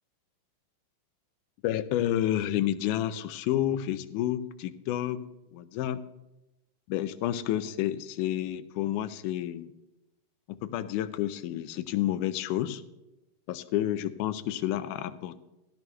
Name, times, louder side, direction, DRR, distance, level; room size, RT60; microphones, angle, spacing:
voice 1, 1.6-5.2 5.5-6.0 6.9-9.7 10.5-12.8 13.5-15.4, left 12 dB, 80° left, 12 dB, 2.0 m, -30 dB
16.0 x 12.0 x 2.3 m, 0.96 s
omnidirectional pair, 3.8 m